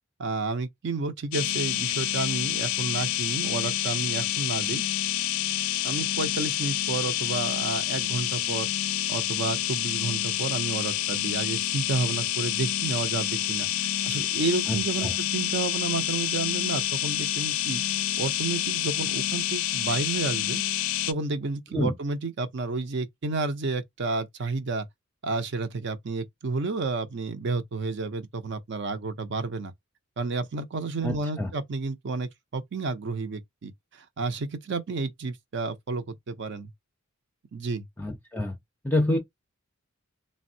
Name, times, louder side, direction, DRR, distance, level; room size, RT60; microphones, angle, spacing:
voice 1, 0.2-4.8 5.8-8.7 9.1-17.8 18.2-20.6 21.1-24.9 25.2-29.7 30.2-36.7 37.5-37.9, right 3 dB, 60° right, 0.6 m, -31 dB
sound 1, 1.3-21.1, left 12 dB, 80° left, 0.4 m, -28 dB
voice 2, 14.7-15.1 21.7-21.9 31.0-31.5 38.0-38.6 38.8-39.2, left 1 dB, 10° left, 0.5 m, -27 dB
3.4 x 2.1 x 2.6 m
head